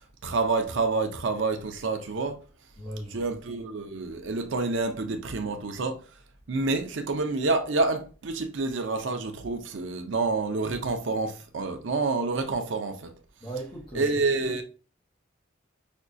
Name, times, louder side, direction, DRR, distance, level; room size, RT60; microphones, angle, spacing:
voice 1, 0.0-2.4 3.1-6.0 6.5-13.1 13.9-14.6, right 3 dB, 80° right, 0.6 m, -28 dB
voice 2, 2.8-3.3 13.4-14.2 14.4-14.6, right 1 dB, 25° left, 0.9 m, -38 dB
5.2 x 2.3 x 2.5 m
head